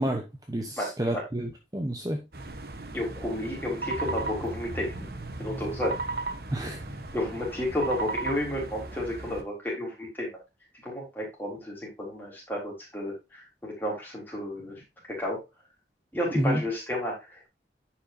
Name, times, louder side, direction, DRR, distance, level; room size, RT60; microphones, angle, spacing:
voice 1, 0.0-2.2 6.5-6.9 16.4-16.6, right 1 dB, 20° right, 3 dB, 0.9 m, -29 dB
voice 2, 0.8-1.2 2.9-5.1 5.4-6.0 7.1-10.3 10.8-14.8 15.1-15.4 16.1-17.5, left 1 dB, 10° left, -3 dB, 4.0 m, -32 dB
sound 1, 2.3-9.4, right 3 dB, 60° right, 1.1 m, -36 dB
10.5 x 5.9 x 2.7 m, 0.24 s
head